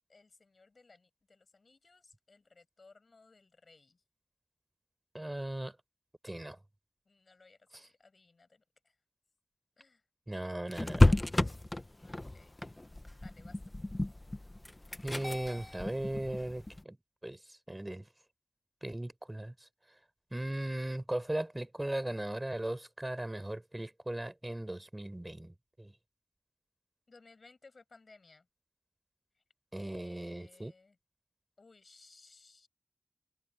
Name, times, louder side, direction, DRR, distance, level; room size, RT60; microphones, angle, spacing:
voice 1, 0.1-4.0 7.1-9.0 9.8-10.0 12.0-12.6 13.2-13.6 27.1-28.5 29.4-29.5 29.8-31.0 31.6-32.7, left 3 dB, 75° left, 7.3 m, -61 dB
voice 2, 5.1-5.8 6.2-6.6 7.7-7.8 10.3-11.2 15.0-17.0 17.2-18.1 18.8-19.7 20.3-25.9 29.7-30.7, right 1 dB, 25° right, 4.7 m, -38 dB
sound 1, 10.7-16.8, left 1 dB, 30° left, 1.1 m, -31 dB
open air
wide cardioid pair, 45°, 0 cm